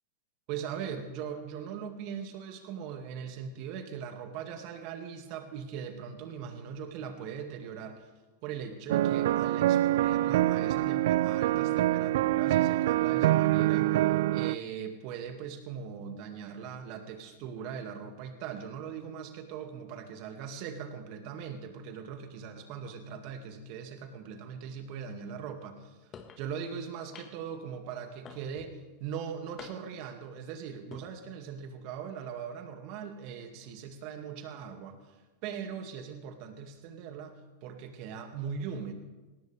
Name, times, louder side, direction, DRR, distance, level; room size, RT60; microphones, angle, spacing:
voice 1, 0.5-8.1 8.4-38.9, right 7 dB, 50° right, 5 dB, 2.2 m, -40 dB
sound 1, 8.9-14.5, right 14 dB, 70° right, 0.4 m, -25 dB
sound 2, 26.1-26.4 27.1-27.5 28.2-28.7 29.6-30.1 30.7-31.1, left 6 dB, 30° left, 1.6 m, -48 dB
19.5 x 17.0 x 3.5 m, 1.2 s
hypercardioid pair, 110°, 0 cm